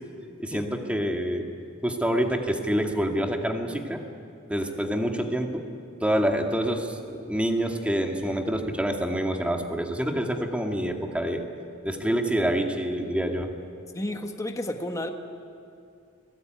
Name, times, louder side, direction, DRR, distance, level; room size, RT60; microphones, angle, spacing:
voice 1, 0.4-1.5 1.8-4.0 4.5-5.6 6.0-11.5 11.8-13.5, equal, 5° right, 3 dB, 2.2 m, -27 dB
voice 2, 13.9-15.1, left 1 dB, 15° left, 4 dB, 1.5 m, -31 dB
29.5 x 21.0 x 9.3 m, 2.5 s
head